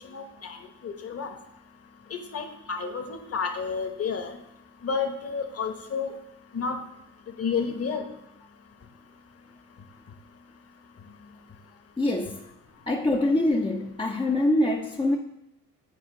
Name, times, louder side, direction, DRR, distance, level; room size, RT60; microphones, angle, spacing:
voice 1, 0.1-0.6 0.8-1.3 2.1-4.4 4.8-6.1 6.5-6.8 7.4-8.0, left 5 dB, 35° left, 6 dB, 1.0 m, -30 dB
voice 2, 12.0-12.5 12.9-15.2, left 1 dB, 10° left, 2 dB, 0.5 m, -24 dB
8.0 x 4.4 x 3.7 m, 0.86 s
hypercardioid pair, 55°, 43 cm